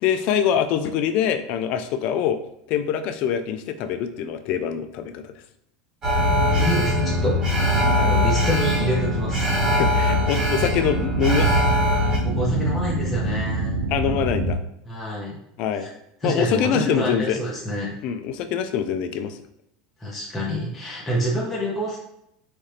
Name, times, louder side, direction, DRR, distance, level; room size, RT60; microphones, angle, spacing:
voice 1, 0.0-2.4 2.7-5.3 7.9-8.2 9.7-11.7 13.9-14.6 15.6-15.9 16.2-17.4 18.0-19.4, left 8 dB, 45° left, 9 dB, 0.4 m, -24 dB
Alarm, 6.0-12.2, left 1 dB, 25° right, 1.1 m, -22 dB
sound 1, 6.2-14.5, right 1 dB, 75° right, 0.5 m, -26 dB
voice 2, 6.4-7.4 8.0-9.5 12.2-13.8 14.9-15.4 15.8-15.9 16.2-17.9 20.0-22.0, equal, 5° left, -6 dB, 0.8 m, -27 dB
4.2 x 2.4 x 3.3 m, 0.78 s
supercardioid pair, 150°, 3 cm